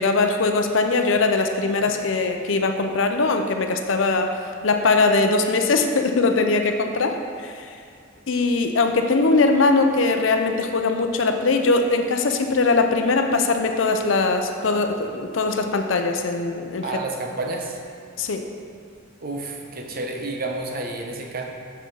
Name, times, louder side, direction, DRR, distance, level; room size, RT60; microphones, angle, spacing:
voice 1, 0.0-4.3 4.6-7.7 8.3-16.8 18.2-18.4, left 3 dB, 75° left, 5 dB, 0.6 m, -21 dB
voice 2, 16.8-17.8 19.2-21.4, right 2 dB, 50° right, 2 dB, 0.9 m, -30 dB
7.6 x 6.6 x 3.9 m, 2.3 s
head